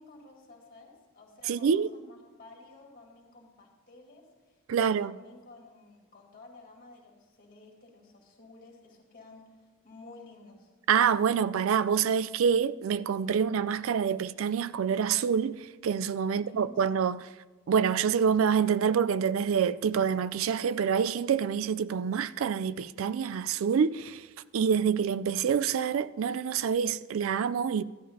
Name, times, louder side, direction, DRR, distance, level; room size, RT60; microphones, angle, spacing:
voice 1, 0.0-10.7 16.3-16.8, left 3 dB, 45° left, 2.3 m, -53 dB
voice 2, 1.5-1.9 4.7-5.1 10.9-17.2 17.7-24.3 24.5-27.8, right 7 dB, 75° right, 0.3 m, -26 dB
13.5 x 11.0 x 2.7 m
head